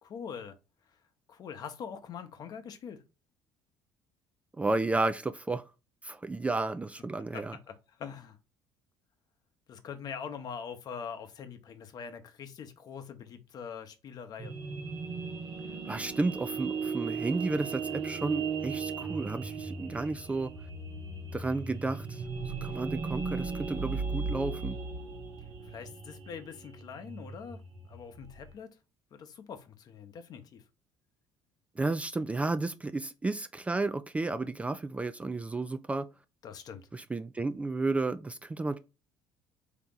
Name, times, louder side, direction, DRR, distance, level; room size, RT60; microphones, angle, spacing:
voice 1, 0.0-0.6 1.3-3.0 7.3-8.4 9.7-14.5 25.6-27.6 27.9-28.7 29.1-30.6 36.4-36.9, left 7 dB, 50° left, 0.8 m, -43 dB
voice 2, 4.6-5.6 6.0-7.6 15.9-20.5 21.3-24.8 31.8-36.1 36.9-38.8, right 3 dB, 15° right, 0.3 m, -32 dB
sound 1, 14.4-28.5, right 5 dB, 55° right, 1.6 m, -37 dB
3.5 x 2.9 x 3.7 m
supercardioid pair, 75°, 8 cm